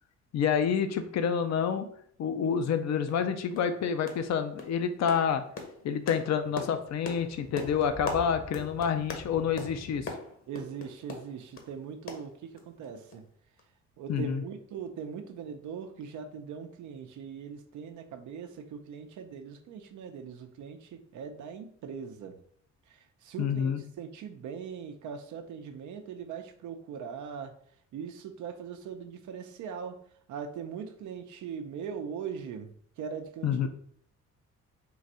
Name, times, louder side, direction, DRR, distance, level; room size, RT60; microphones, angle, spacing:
voice 1, 0.3-1.9 2.2-5.4 5.8-10.1 14.1-14.4 23.4-23.8 33.4-33.7, left 7 dB, 60° left, 8 dB, 0.6 m, -28 dB
sound 1, 2.6-2.7 3.1-3.2 3.5-3.8 4.1-4.3 4.6-11.7 12.1-12.9 13.1-13.2 13.6-13.7, left 3 dB, 45° left, 1.0 m, -41 dB
sound 2, 6.7-10.1, left 1 dB, 5° right, 0.7 m, -47 dB
voice 2, 10.5-13.2 14.0-22.4 22.9-27.5 27.9-30.0 30.3-32.7 33.0-33.7, right 7 dB, 75° right, 6 dB, 0.7 m, -40 dB
3.9 x 2.5 x 4.2 m, 0.63 s
cardioid pair, 90°, 30 cm